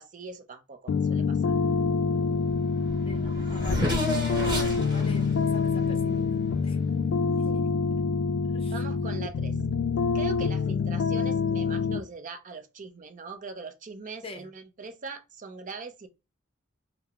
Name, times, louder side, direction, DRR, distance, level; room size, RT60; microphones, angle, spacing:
voice 1, 0.0-1.6 7.2-7.6 8.7-9.6 10.1-16.1, right 4 dB, 40° right, 0.5 m, -41 dB
sound 1, 0.9-12.0, left 5 dB, 75° left, 0.3 m, -26 dB
Race car auto racing / Accelerating revving vroom, 2.5-2.6 2.8-6.8, equal, 25° right, 1.2 m, -32 dB
voice 2, 3.0-4.0 4.7-6.4 6.6-6.8 7.4-7.6 8.5-9.3 14.2-14.5, left 2 dB, 30° left, 0.6 m, -44 dB
3.5 x 2.0 x 2.7 m
head